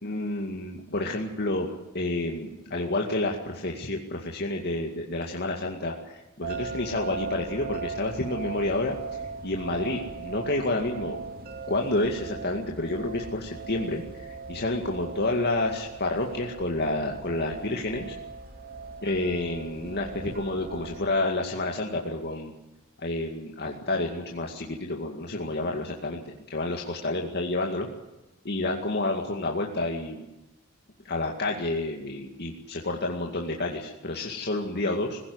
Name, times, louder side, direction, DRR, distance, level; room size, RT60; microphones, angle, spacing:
voice 1, 0.0-1.7 1.9-11.2 11.7-18.2 19.0-22.5 23.0-26.2 26.5-27.9 28.5-30.2 31.0-35.2, left 2 dB, 50° left, 1 dB, 2.2 m, -29 dB
sound 1, 6.4-21.1, right 4 dB, 45° right, 2.5 m, -39 dB
20.5 x 16.5 x 9.7 m, 0.99 s
head